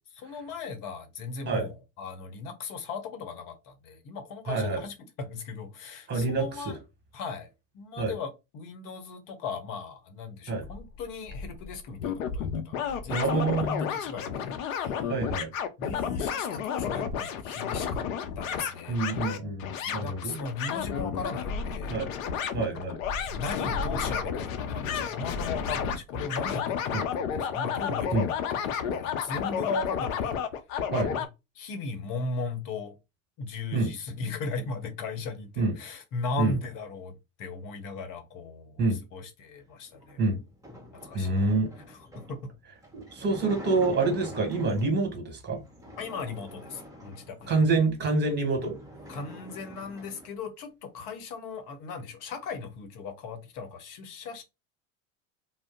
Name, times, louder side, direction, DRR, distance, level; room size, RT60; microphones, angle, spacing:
voice 1, 0.1-6.8 7.1-15.1 15.8-18.0 18.4-22.0 22.7-28.3 28.5-30.4 31.2-31.3 31.5-33.0 33.4-38.8 39.1-40.2 41.0-41.3 42.3-42.5 46.0-47.6 49.1-54.4, left 4 dB, 50° left, 1.0 m, -37 dB
voice 2, 4.5-4.8 6.1-6.7 8.0-8.1 10.5-10.6 13.1-13.9 15.1-15.5 18.9-20.3 21.9-22.1 22.5-23.0 26.9-27.0 28.1-28.3 30.9-31.1 33.7-33.9 35.6-35.7 36.4-36.5 38.8-39.0 40.2-40.4 41.1-41.7 42.9-45.6 47.5-48.7, right 3 dB, 25° right, 1.5 m, -27 dB
sound 1, 10.6-12.5 12.8-13.7 21.4-25.9, left 2 dB, 25° left, 0.5 m, -40 dB
sound 2, 12.0-31.3, left 7 dB, 75° left, 0.6 m, -31 dB
sound 3, 39.9-45.1 45.6-47.7 48.2-48.3 48.5-50.4, equal, 10° right, 1.1 m, -45 dB
2.5 x 2.1 x 3.8 m
hypercardioid pair, 85°, 40 cm